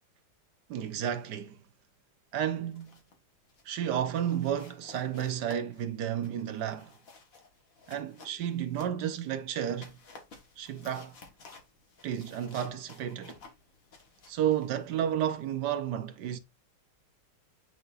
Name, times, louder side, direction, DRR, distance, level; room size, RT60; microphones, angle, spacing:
voice 1, 0.7-1.6 2.3-3.0 3.6-6.9 7.9-10.0 10.6-11.2 12.0-13.4 14.3-16.4, right 10 dB, 65° right, 1.2 m, -32 dB
sound 1, 2.5-3.2 3.5-3.8 4.2-9.3 9.7-15.6, left 4 dB, 45° left, 1.7 m, -54 dB
9.8 x 3.9 x 2.5 m
omnidirectional pair, 2.2 m